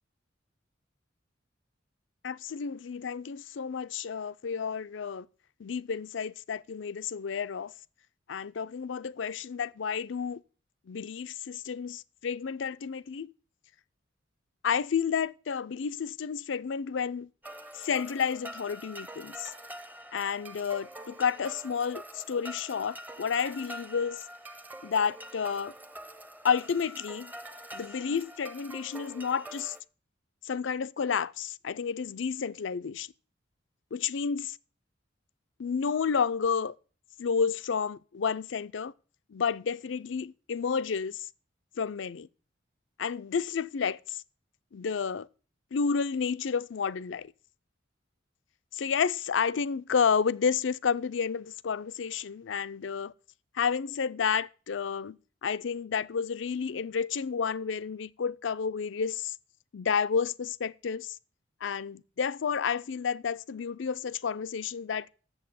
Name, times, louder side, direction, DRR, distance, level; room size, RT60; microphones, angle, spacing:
voice 1, 2.2-5.3 5.6-7.7 8.3-10.4 10.9-13.3 14.6-17.3 17.7-19.5 20.1-24.2 24.8-25.7 26.4-27.3 27.7-29.7 30.4-33.1 33.9-34.6 35.6-36.7 37.2-38.9 39.3-41.3 41.8-42.3 43.0-44.2 44.7-45.3 45.7-47.3 48.7-53.1 53.6-59.3 59.7-61.2 61.6-65.1, left 6 dB, 75° left, 0.5 m, -31 dB
sound 1, 17.4-29.8, right 1 dB, 10° right, 0.6 m, -45 dB
8.0 x 7.2 x 8.4 m
head